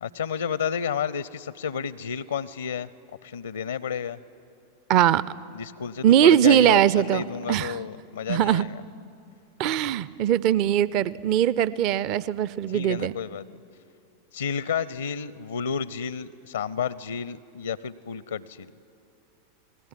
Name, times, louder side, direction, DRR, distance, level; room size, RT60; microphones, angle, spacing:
voice 1, 0.0-2.9 3.2-4.2 5.5-8.8 12.7-13.5 14.3-18.7, left 7 dB, 70° left, 19 dB, 0.6 m, -31 dB
voice 2, 4.9-5.2 6.0-7.2 7.5-7.8 8.3-8.6 9.6-13.1, right 11 dB, 40° right, 19 dB, 0.6 m, -20 dB
28.0 x 20.5 x 9.8 m, 2.5 s
figure-of-eight pair, 90°, 0 cm